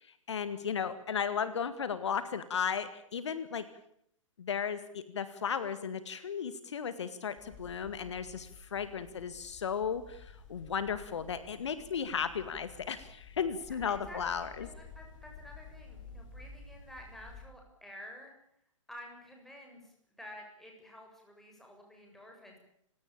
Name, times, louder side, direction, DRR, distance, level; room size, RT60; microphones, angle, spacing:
voice 1, 0.3-3.6 4.4-14.7, left 7 dB, 60° left, 12 dB, 2.0 m, -35 dB
sound 1, 7.4-17.5, left 4 dB, 25° left, 7.1 m, -52 dB
voice 2, 13.9-18.3 18.9-22.6, left 1 dB, ahead, 0 dB, 7.4 m, -51 dB
29.5 x 17.5 x 8.8 m, 0.70 s
figure-of-eight pair, 120°, 17 cm